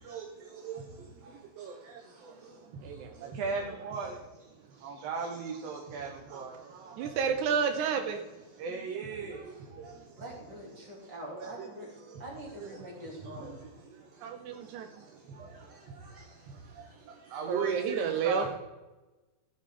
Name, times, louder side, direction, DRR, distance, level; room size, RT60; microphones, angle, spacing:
voice 1, 2.8-3.3 7.0-8.2 14.2-14.9 17.5-18.5, right 6 dB, 85° right, 6 dB, 2.2 m, -30 dB
voice 2, 3.4-4.1 4.8-6.5 7.2-7.3 8.6-9.4 11.3-11.7 17.3-18.5, right 5 dB, 65° right, 2 dB, 2.0 m, -36 dB
voice 3, 9.8-11.9 12.2-13.6 15.3-15.4 15.7-16.5 16.8-16.9, right 1 dB, 35° right, -3 dB, 3.5 m, -46 dB
14.0 x 8.0 x 3.7 m, 1.1 s
omnidirectional pair, 3.4 m